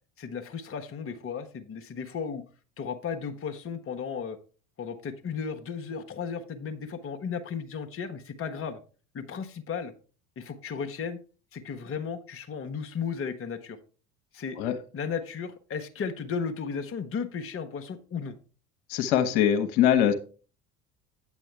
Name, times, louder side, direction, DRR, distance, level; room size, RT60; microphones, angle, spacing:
voice 1, 0.2-2.4 2.8-4.4 4.8-8.8 9.1-9.9 10.4-11.2 11.5-13.8 14.3-14.6 14.9-18.3, left 6 dB, 30° left, 8 dB, 1.1 m, -35 dB
voice 2, 18.9-20.1, left 10 dB, 60° left, 7 dB, 1.1 m, -22 dB
8.9 x 8.2 x 3.4 m, 0.37 s
figure-of-eight pair, 65°, 43 cm